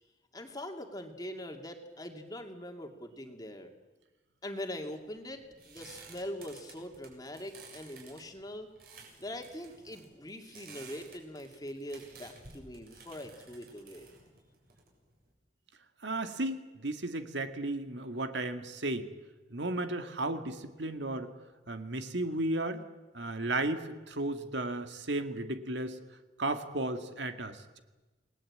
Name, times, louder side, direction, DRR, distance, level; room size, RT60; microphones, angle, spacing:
voice 1, 0.3-3.7 4.4-8.7 9.2-14.1, left 1 dB, 20° left, 4 dB, 2.4 m, -42 dB
sound 1, 4.9-15.3, right 4 dB, 55° right, 7.4 m, -54 dB
voice 2, 16.0-19.1 19.5-21.3 21.7-22.8 23.1-26.0 26.4-27.8, right 2 dB, 75° right, 8 dB, 1.9 m, -34 dB
29.0 x 19.5 x 8.7 m, 1.2 s
head